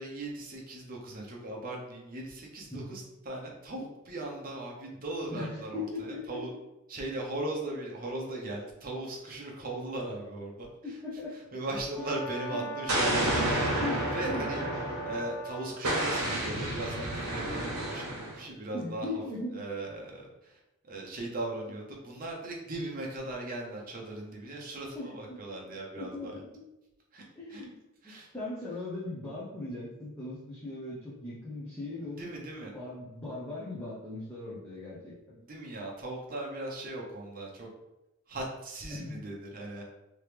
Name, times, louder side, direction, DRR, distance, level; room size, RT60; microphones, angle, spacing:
voice 1, 0.0-6.5 6.9-11.0 11.3-13.7 14.1-14.6 15.0-19.2 19.5-26.4 27.1-27.6 28.0-28.3 32.0-32.7 35.4-37.7 38.3-39.8, right 2 dB, 40° right, -1 dB, 0.8 m, -38 dB
voice 2, 5.3-6.4 10.8-11.3 12.5-12.6 13.8-14.0 14.3-14.4 18.7-19.6 24.9-25.4 26.0-26.3 27.4-27.7 28.0-32.3 32.7-35.4 38.9-39.2, left 2 dB, 10° left, -9 dB, 0.7 m, -39 dB
Brass instrument, 11.9-15.8, right 1 dB, 70° left, 0.8 m, -40 dB
Explosion, 12.9-15.3 15.8-18.4, right 1 dB, 65° right, 1.1 m, -30 dB
3.1 x 3.0 x 3.3 m, 0.95 s
head